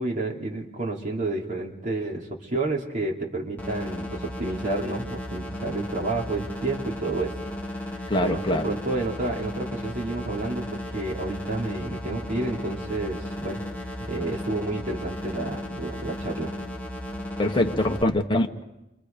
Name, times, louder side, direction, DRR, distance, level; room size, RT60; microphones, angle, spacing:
voice 1, 0.0-7.3 7.9-13.6 14.1-16.5, right 2 dB, 45° right, -1 dB, 2.8 m, -30 dB
sound 1, 3.6-18.0, left 1 dB, 10° left, 2.5 m, -35 dB
voice 2, 8.1-8.6 17.4-18.6, left 1 dB, 25° left, 3 dB, 1.2 m, -23 dB
28.5 x 24.5 x 5.2 m, 0.95 s
head